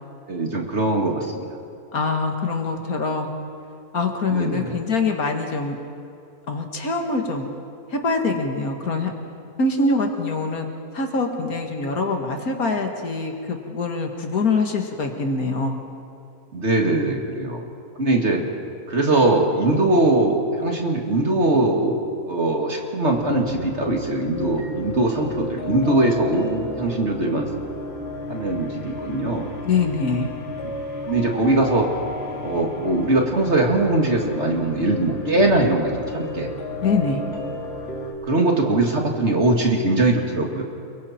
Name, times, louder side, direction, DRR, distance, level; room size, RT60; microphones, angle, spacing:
voice 1, 0.3-1.3 4.3-4.8 16.5-17.6 18.0-18.4 18.9-22.0 22.2-27.5 28.3-29.5 31.1-31.9 32.4-36.5 38.3-40.6, right 2 dB, 45° right, 1 dB, 2.5 m, -21 dB
voice 2, 1.9-3.3 3.9-5.8 6.5-7.5 7.9-9.1 9.6-10.7 10.9-15.8 29.6-30.3 36.8-37.2, left 3 dB, 70° left, 3 dB, 2.3 m, -24 dB
sound 1, 23.1-38.1, left 2 dB, 40° left, 2.8 m, -33 dB
29.5 x 22.5 x 4.4 m, 2.5 s
omnidirectional pair, 1.6 m